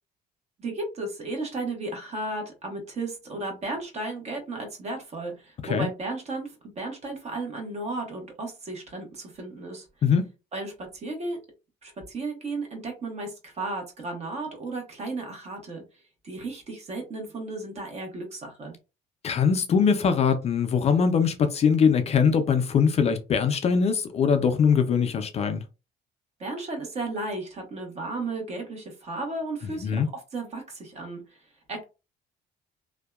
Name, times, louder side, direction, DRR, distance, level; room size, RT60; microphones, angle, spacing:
voice 1, 0.6-9.9 10.5-11.4 11.8-15.8 16.2-18.7 26.4-31.4 31.7-31.8, right 2 dB, 40° right, 1.0 m, -34 dB
voice 2, 19.2-25.6 29.8-30.1, left 6 dB, 40° left, 0.4 m, -22 dB
2.6 x 2.1 x 2.3 m
cardioid pair, 110°, 17 cm